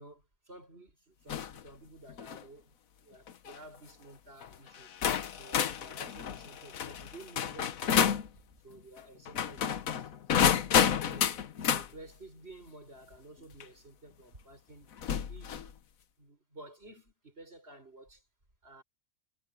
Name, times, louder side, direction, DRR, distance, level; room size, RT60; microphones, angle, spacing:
voice 1, 0.0-4.9 5.3-8.3 8.6-10.2 11.0-15.0 15.3-15.6 16.2-18.3 18.6-18.8, right 2 dB, 45° right, 6.7 m, -52 dB
sound 1, 1.3-1.6 2.1-2.4 3.3-3.6 4.4-4.5 5.0-8.3 9.3-11.9 13.6-13.7 15.0-15.7, left 8 dB, 75° left, 1.4 m, -29 dB
omnidirectional pair, 1.5 m